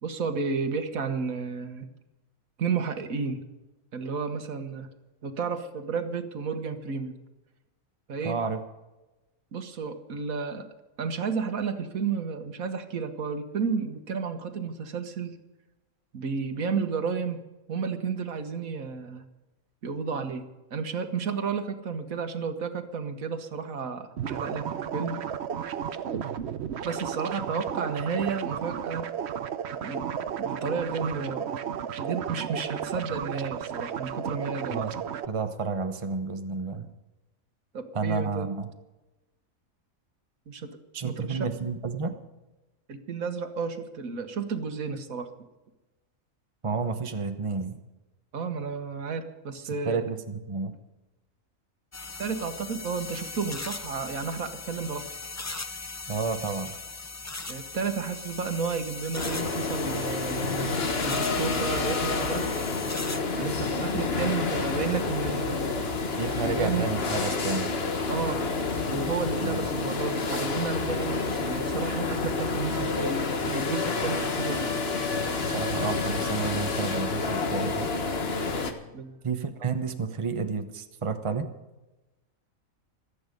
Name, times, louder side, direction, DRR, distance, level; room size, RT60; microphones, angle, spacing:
voice 1, 0.0-1.9 2.6-3.4 3.9-4.9 5.2-7.1 8.1-8.4 9.5-10.7 11.0-15.4 16.1-17.4 17.7-19.2 19.8-25.2 26.8-29.1 29.8-30.1 30.4-31.5 32.0-34.8 37.7-38.5 40.5-40.7 41.0-41.5 42.9-45.3 48.3-50.1 52.2-55.1 57.5-62.4 63.3-65.9 66.4-66.9 68.1-68.4 68.9-74.8 78.9-79.2, right 5 dB, 75° right, 8 dB, 1.7 m, -32 dB
voice 2, 8.2-8.6 34.7-34.9 35.3-36.9 37.9-38.7 40.9-42.2 46.6-47.8 49.8-50.7 56.1-56.7 66.2-67.7 69.4-69.6 75.4-77.9 79.2-81.5, right 4 dB, 25° right, 7 dB, 1.0 m, -31 dB
sound 1, 24.2-35.3, right 8 dB, 55° right, 0.9 m, -33 dB
sound 2, 51.9-63.2, left 3 dB, 25° left, 0.4 m, -39 dB
sound 3, 59.1-78.7, left 4 dB, 45° left, 1.5 m, -29 dB
25.0 x 8.6 x 5.2 m, 1.1 s
omnidirectional pair, 1.4 m